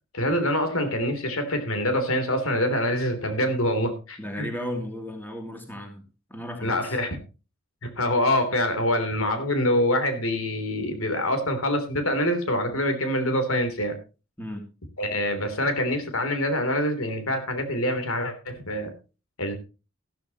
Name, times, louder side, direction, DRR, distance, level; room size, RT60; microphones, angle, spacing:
voice 1, 0.1-4.5 6.6-7.1 7.8-14.0 15.0-18.9 19.4-19.6, left 1 dB, 85° left, 7 dB, 3.3 m, -25 dB
voice 2, 4.2-6.0 6.3-7.0 14.4-14.6, equal, 10° left, 3 dB, 2.8 m, -34 dB
14.5 x 13.0 x 3.0 m, 0.32 s
head